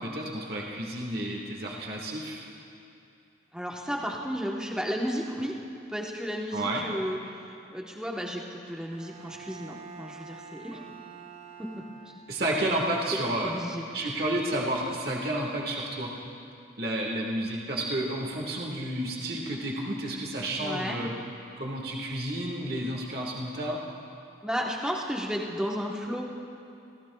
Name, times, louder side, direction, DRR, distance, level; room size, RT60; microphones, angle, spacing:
voice 1, 0.0-2.5 6.5-6.8 12.3-13.5 13.9-16.1 16.8-21.1 21.6-23.8, right 1 dB, 55° right, -1 dB, 1.6 m, -31 dB
voice 2, 3.5-5.5 5.9-7.2 7.7-10.8 11.6-11.7 13.4-13.8 20.6-21.0 24.4-26.3, equal, 5° right, -2 dB, 1.0 m, -33 dB
Bowed string instrument, 8.9-12.6, right 5 dB, 30° right, 0.9 m, -47 dB
28.0 x 15.5 x 2.3 m, 2.6 s
head